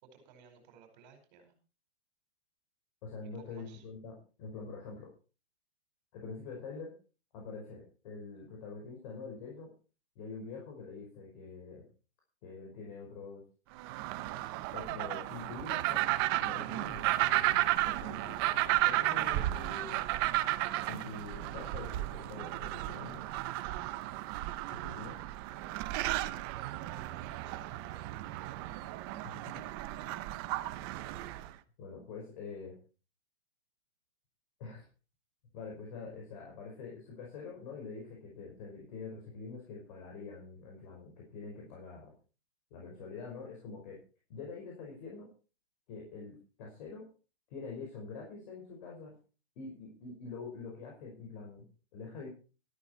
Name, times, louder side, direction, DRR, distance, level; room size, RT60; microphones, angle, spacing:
voice 1, 0.0-1.5 3.2-3.8 26.2-26.3 26.9-28.1 30.0-30.2, right 6 dB, 40° right, 6 dB, 5.0 m, -58 dB
voice 2, 3.0-5.1 6.1-6.9 7.3-9.7 10.2-11.9 12.4-13.4 14.7-16.1 16.4-20.0 20.9-23.2 24.7-25.1 29.2-29.5 31.8-32.7 34.6-34.9 35.5-42.1 42.7-44.0 44.3-45.3 45.9-47.1 47.5-49.1 49.6-52.3, left 4 dB, 40° left, -1 dB, 5.3 m, -45 dB
sound 1, 13.8-31.5, right 16 dB, 20° right, 0.6 m, -33 dB
13.5 x 12.5 x 4.5 m, 0.36 s
hypercardioid pair, 155°, 34 cm